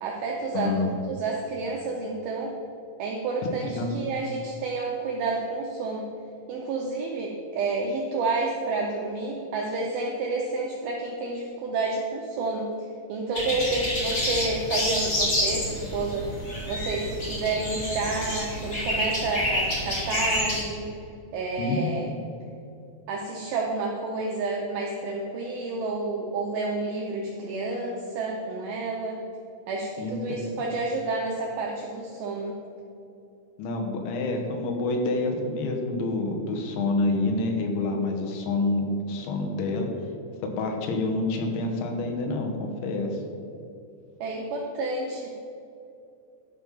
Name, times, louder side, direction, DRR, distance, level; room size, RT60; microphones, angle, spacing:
voice 1, 0.0-2.5 3.0-6.1 6.5-16.3 16.7-20.9 21.3-22.1 23.1-29.2 29.7-32.6 44.2-45.3, right 3 dB, 80° right, -1 dB, 2.1 m, -30 dB
voice 2, 0.6-0.9 3.4-3.5 3.8-3.9 21.6-21.9 30.0-30.6 33.6-39.9 40.4-43.1, left 2 dB, 85° left, 2 dB, 3.4 m, -27 dB
sound 1, 13.3-20.6, left 1 dB, 35° left, 1.6 m, -28 dB
11.5 x 5.3 x 5.5 m, 2.7 s
omnidirectional pair, 5.3 m